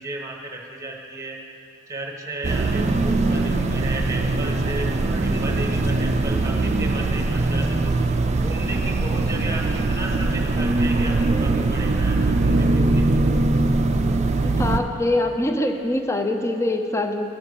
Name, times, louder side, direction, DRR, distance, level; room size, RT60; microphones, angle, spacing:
voice 1, 0.0-1.4 1.9-8.0 8.4-13.1, right 2 dB, 15° right, 1 dB, 1.2 m, -33 dB
sound 1, 2.4-14.8, right 2 dB, 30° right, 0.5 m, -21 dB
voice 2, 14.4-17.2, left 1 dB, 15° left, 5 dB, 0.6 m, -23 dB
14.0 x 5.6 x 6.5 m, 2.7 s
head